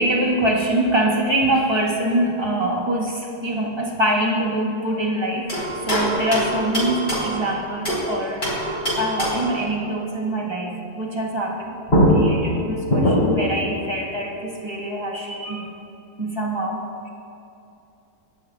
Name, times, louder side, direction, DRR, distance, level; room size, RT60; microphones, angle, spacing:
voice 1, 0.0-11.8 12.1-15.7 16.2-17.1, right 1 dB, 20° right, -3 dB, 1.5 m, -24 dB
sound 1, 5.5-8.1 8.4-9.6 11.5-11.6 11.9-13.5, equal, 35° left, 3.6 m, -22 dB
25.0 x 11.0 x 2.4 m, 2.7 s
omnidirectional pair, 1.7 m